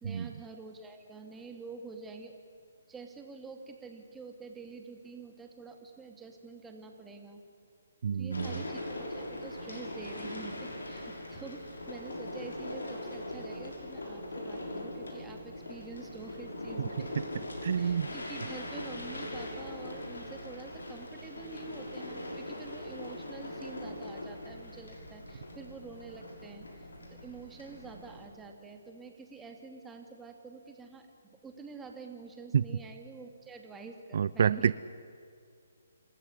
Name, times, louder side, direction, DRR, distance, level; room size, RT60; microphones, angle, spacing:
voice 1, 0.0-2.4 2.9-7.4 8.1-17.1 17.8-31.1 31.3-34.7, right 4 dB, 10° right, 3 dB, 2.4 m, -47 dB
voice 2, 8.0-8.5 17.6-18.1 32.5-32.6 34.1-34.7, right 7 dB, 55° right, 17 dB, 0.5 m, -27 dB
sound 1, 8.3-28.3, left 1 dB, 85° left, 6.2 m, -41 dB
27.5 x 15.0 x 10.0 m, 2.4 s
hypercardioid pair, 150°, 0 cm